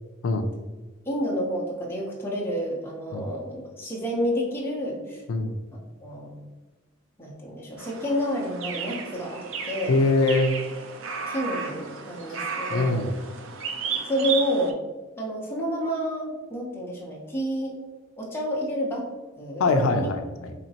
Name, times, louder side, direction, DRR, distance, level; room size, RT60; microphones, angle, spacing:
voice 1, 1.0-5.2 6.0-6.3 7.2-10.0 11.3-13.1 14.1-14.8 15.2-17.7 18.2-19.1 19.4-19.7 20.0-20.1, equal, 10° left, -4 dB, 0.8 m, -29 dB
sound 1, 7.8-14.7, right 5 dB, 70° right, 0.4 m, -34 dB
voice 2, 9.9-10.6 12.3-12.4 12.7-13.1 19.6-20.5, left 3 dB, 75° left, 6 dB, 0.4 m, -23 dB
4.2 x 2.9 x 2.8 m, 1.2 s
head